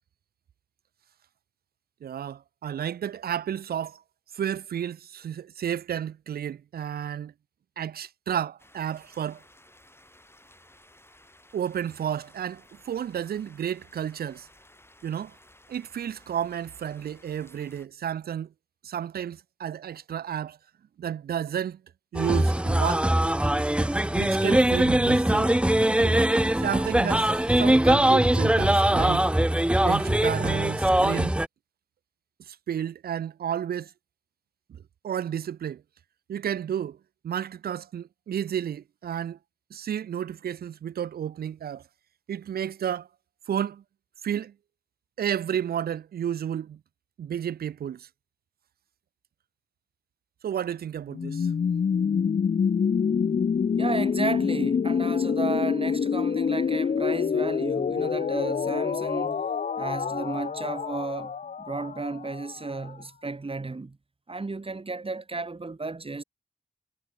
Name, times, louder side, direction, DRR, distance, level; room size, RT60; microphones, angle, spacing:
voice 1, 2.0-4.0 4.3-7.3 7.8-9.4 11.5-14.5 15.0-15.3 15.7-18.5 18.8-20.6 21.0-21.8 22.1-23.1 24.1-25.5 26.0-26.3 26.6-29.3 29.8-31.3 32.5-33.9 34.7-35.8 36.3-37.0 37.2-39.4 39.7-41.8 42.3-43.1 43.5-43.8 44.2-44.5 45.2-46.8 47.2-48.1 50.4-51.5, right 9 dB, 80° right, 0.5 m, -32 dB
sound 1, 8.6-17.9, left 1 dB, 15° left, 4.4 m, -56 dB
sound 2, 22.1-31.5, right 1 dB, 5° right, 0.5 m, -22 dB
sound 3, 51.1-62.9, left 6 dB, 55° left, 0.5 m, -26 dB
voice 2, 53.8-59.4 59.8-64.0 64.3-66.2, right 3 dB, 35° right, 1.3 m, -33 dB
cardioid pair, 40°, 16 cm